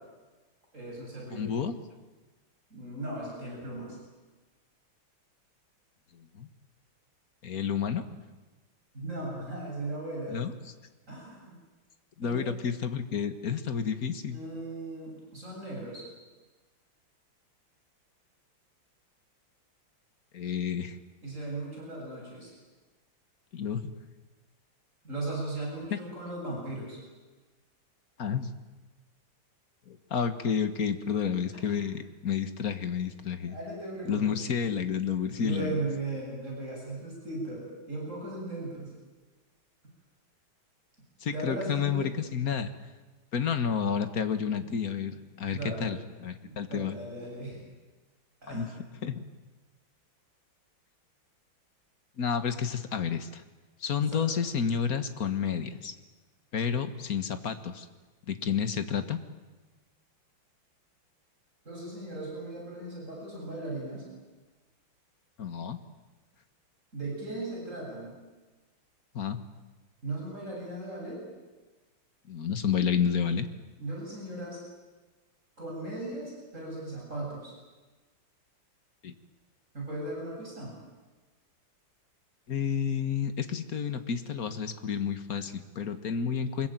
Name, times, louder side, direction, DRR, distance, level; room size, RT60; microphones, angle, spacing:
voice 1, 0.7-1.5 2.7-4.0 8.9-10.4 11.1-11.6 12.2-12.5 14.3-16.0 21.2-22.5 25.0-27.0 31.6-31.8 33.4-34.3 35.3-39.0 41.3-42.1 45.5-45.9 46.4-47.6 48.4-48.7 54.0-54.2 61.6-64.0 66.9-68.2 70.0-71.2 73.8-74.6 75.6-77.5 79.7-80.7, right 2 dB, 35° right, -3 dB, 8.5 m, -37 dB
voice 2, 1.3-1.7 6.4-6.5 7.4-8.0 10.3-10.5 12.2-14.4 20.3-21.0 23.5-23.9 25.9-26.0 28.2-28.5 29.9-33.6 34.1-35.8 41.2-42.7 43.3-47.0 48.5-48.7 49.0-49.2 52.2-53.4 53.8-55.9 56.5-57.9 58.3-59.2 65.4-65.8 69.1-69.4 72.3-73.5 79.0-79.1 82.5-86.7, left 7 dB, 50° left, 10 dB, 1.9 m, -30 dB
24.5 x 22.0 x 9.2 m, 1.2 s
omnidirectional pair, 2.2 m